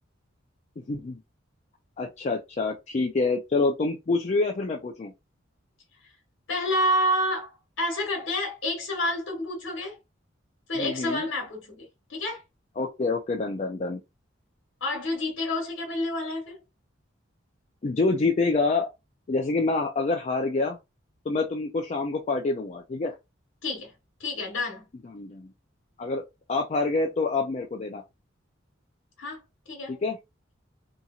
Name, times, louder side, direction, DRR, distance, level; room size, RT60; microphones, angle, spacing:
voice 1, 0.8-1.2 2.0-5.1 10.7-11.2 12.8-14.0 17.8-18.9 19.3-20.8 21.3-23.1 25.1-25.5 26.0-26.2 26.5-28.0 29.9-30.2, left 3 dB, 35° left, 0.4 m, -27 dB
voice 2, 6.5-10.0 10.7-12.4 14.8-16.6 23.6-23.9 24.2-24.8 29.2-29.4 29.7-30.0, left 1 dB, 70° left, 1.3 m, -29 dB
2.8 x 2.6 x 2.4 m
head